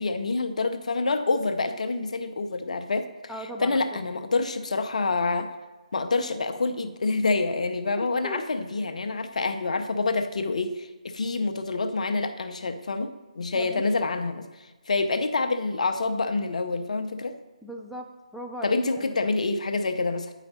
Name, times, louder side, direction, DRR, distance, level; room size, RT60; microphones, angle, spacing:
voice 1, 0.0-3.1 3.6-5.5 5.9-17.3 18.6-20.3, left 3 dB, 65° left, 8 dB, 0.8 m, -27 dB
voice 2, 3.3-4.1 8.2-8.4 13.5-13.8 17.6-18.1 18.3-19.3, equal, ahead, 0 dB, 0.4 m, -38 dB
9.0 x 5.0 x 4.2 m, 1.2 s
figure-of-eight pair, 150°, 4 cm